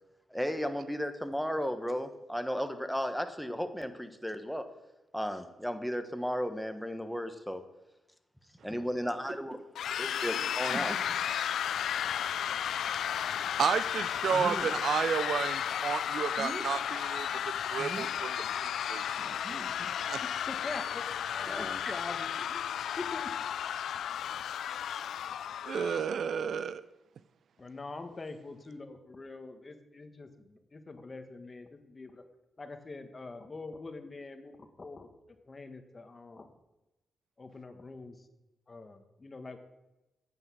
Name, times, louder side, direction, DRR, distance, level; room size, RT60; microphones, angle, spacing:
voice 1, 0.3-4.6 5.1-7.6 8.6-9.6 10.0-11.1 21.3-21.8, equal, ahead, 7 dB, 1.3 m, -34 dB
sound 1, 9.1-9.6 10.2-10.3 10.7-11.3 11.9-12.0 14.3-14.9 16.2-16.6 17.8-18.2 19.2-20.0, right 3 dB, 40° right, 1.1 m, -42 dB
sound 2, 9.8-26.1, left 9 dB, 80° left, 0.3 m, -34 dB
voice 2, 12.9-17.3 17.7-19.2 20.1-20.2 25.7-26.8, right 7 dB, 70° right, 14 dB, 0.4 m, -32 dB
voice 3, 20.2-21.0 21.5-22.7 23.0-23.3 27.6-32.2 32.6-35.1 35.5-36.5 37.4-38.2 38.7-39.6, left 3 dB, 35° left, 6 dB, 1.5 m, -44 dB
9.3 x 7.9 x 6.3 m, 0.98 s
cardioid pair, 65°, 0 cm